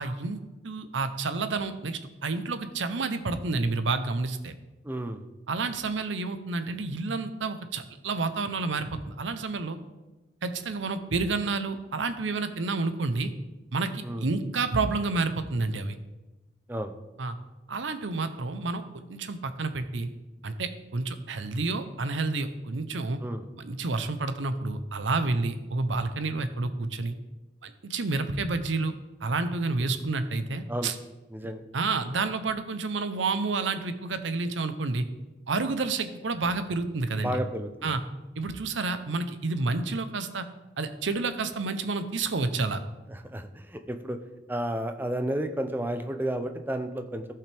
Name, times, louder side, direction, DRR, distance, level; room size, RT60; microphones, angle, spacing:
voice 1, 0.0-4.5 5.5-9.8 10.4-13.3 13.7-16.0 17.2-17.4 17.7-18.8 19.1-20.1 20.4-23.2 23.6-27.1 27.6-28.9 29.2-30.9 31.7-35.0 35.5-37.4 37.8-38.0 38.4-40.5 40.8-42.8, right 3 dB, 85° right, 10 dB, 0.7 m, -29 dB
voice 2, 4.8-5.2 14.0-14.3 16.7-16.9 23.2-23.4 30.7-30.9 31.3-31.6 37.2-38.0 43.1-44.2 44.5-47.3, right 1 dB, 10° right, 7 dB, 0.5 m, -32 dB
14.0 x 5.7 x 3.4 m, 1.1 s
head